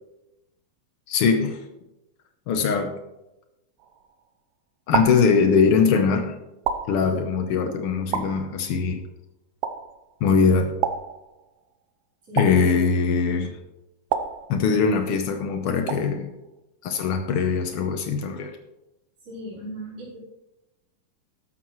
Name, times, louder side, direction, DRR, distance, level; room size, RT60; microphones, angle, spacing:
voice 1, 1.1-1.6 2.5-3.0 4.9-6.3 6.9-9.0 10.2-10.7 12.3-13.5 14.5-16.3 16.8-18.5, left 5 dB, 85° left, 6 dB, 1.2 m, -21 dB
sound 1, 3.8-4.3 4.9-5.9 6.7-7.5 8.1-9.0 9.6-10.3 10.8-11.7 12.4-13.2 14.1-15.1 15.9-16.5, right 8 dB, 80° right, 2.5 m, -31 dB
voice 2, 19.2-20.2, right 1 dB, 45° right, -12 dB, 5.3 m, -37 dB
13.5 x 12.0 x 3.2 m, 0.94 s
omnidirectional pair, 3.9 m